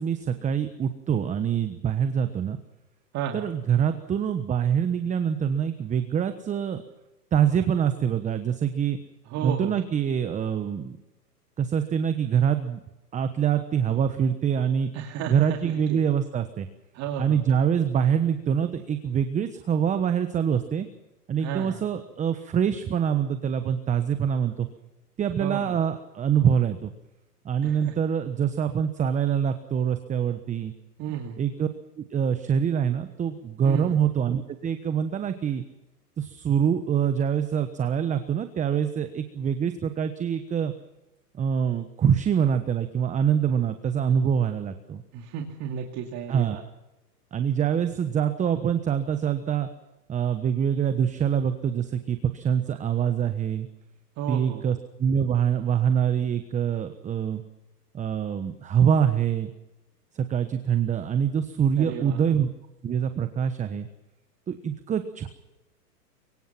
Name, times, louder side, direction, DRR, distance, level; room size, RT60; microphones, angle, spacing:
voice 1, 0.0-2.6 3.3-6.8 7.3-9.0 9.4-11.0 11.6-12.8 13.1-14.9 15.3-16.7 17.2-20.9 21.3-24.7 25.2-26.9 27.4-30.7 31.4-31.7 32.0-35.6 36.2-40.7 41.4-45.0 46.3-46.6 47.3-49.7 50.1-53.7 54.3-57.4 57.9-59.5 60.1-62.5 62.8-63.9 64.5-65.3, right 8 dB, 15° right, 9 dB, 1.1 m, -25 dB
voice 2, 3.1-3.5 9.3-9.8 14.9-16.0 16.9-17.4 21.4-21.8 25.4-25.8 27.6-27.9 31.0-31.4 33.6-34.0 45.1-46.6 54.2-54.7 61.8-62.2, right 8 dB, 35° right, 2 dB, 2.6 m, -33 dB
24.0 x 23.5 x 5.8 m, 0.98 s
hypercardioid pair, 120°, 48 cm